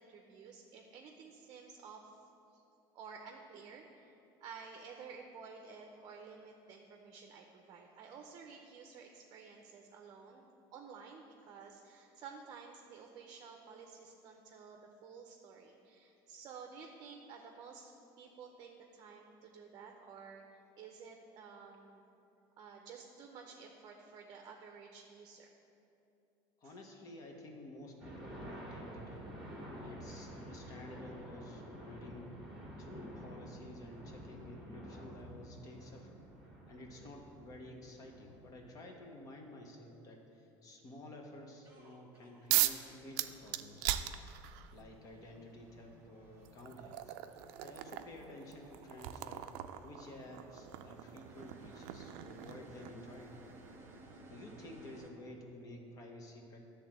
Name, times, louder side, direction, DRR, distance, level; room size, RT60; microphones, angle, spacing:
voice 1, 0.0-2.2 2.5-2.6 2.9-17.9 18.2-20.4 20.8-22.0 22.6-25.5 26.6-26.7 36.7-37.1, right 5 dB, 45° right, 2 dB, 0.7 m, -52 dB
voice 2, 26.6-29.3 29.8-32.4 32.8-36.2 36.7-44.2 44.7-47.1 47.6-49.5 49.8-53.4 54.2-56.6, left 1 dB, 35° left, 2 dB, 1.1 m, -52 dB
sound 1, 28.0-38.7, equal, ahead, 1.8 m, -49 dB
sound 2, 41.6-55.1, right 2 dB, 25° right, 1.3 m, -58 dB
sound 3, 42.5-42.8 43.2-44.7 45.8-45.9 46.5-53.1, right 14 dB, 90° right, 0.4 m, -38 dB
10.5 x 3.6 x 7.4 m, 2.8 s
cardioid pair, 155°, 10 cm